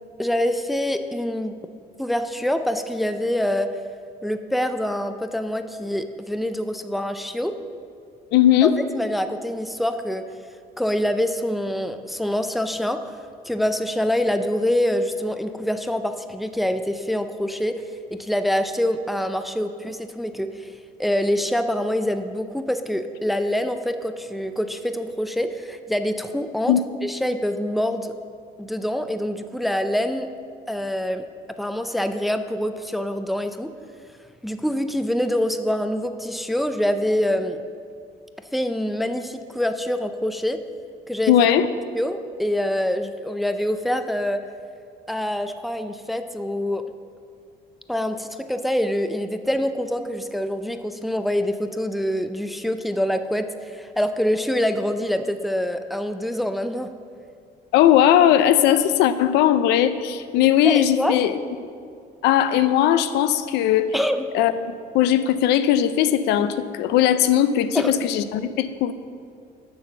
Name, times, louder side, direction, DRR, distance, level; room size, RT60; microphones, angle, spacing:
voice 1, 0.2-1.5 2.0-3.7 4.2-7.6 8.6-10.2 10.8-13.0 13.4-17.8 18.1-20.7 21.0-28.1 28.6-30.3 30.7-31.3 31.6-33.7 34.4-37.6 38.5-40.6 41.1-41.3 41.9-44.4 45.1-46.9 47.9-56.9 60.6-61.2 63.9-64.3 67.7-67.9, left 1 dB, ahead, 8 dB, 0.4 m, -25 dB
voice 2, 8.3-8.7 26.7-26.8 41.3-41.7 57.7-61.4 62.2-63.9 64.3-68.9, left 11 dB, 85° left, 12 dB, 0.5 m, -18 dB
7.0 x 5.9 x 6.5 m, 2.3 s
cardioid pair, 110°, 17 cm